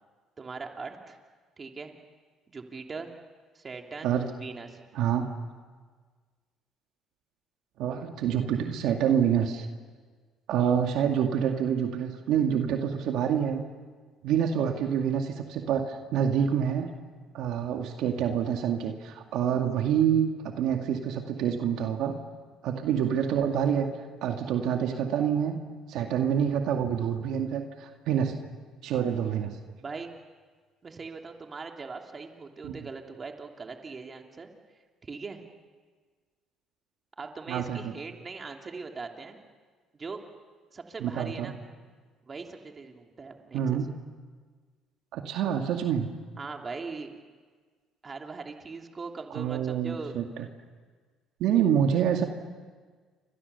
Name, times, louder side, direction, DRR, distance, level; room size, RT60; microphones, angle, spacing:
voice 1, 0.4-1.2 1.6-1.9 2.5-3.1 3.5-4.8 29.8-30.1 30.8-34.5 35.0-35.4 37.2-39.4 39.9-40.2 40.7-41.6 42.3-44.0 46.4-47.1 48.0-50.1, right 4 dB, 30° right, 3 dB, 3.0 m, -40 dB
voice 2, 4.9-5.3 7.8-9.7 10.5-13.6 14.2-16.9 17.3-22.2 22.6-23.9 24.2-25.6 25.9-28.3 28.8-29.6 32.6-32.7 37.5-37.9 41.0-41.5 43.5-43.9 45.1-46.1 49.3-50.5 51.4-52.3, right 8 dB, 75° right, 4 dB, 2.1 m, -27 dB
29.0 x 25.5 x 7.0 m, 1.5 s
cardioid pair, 90°, 0 cm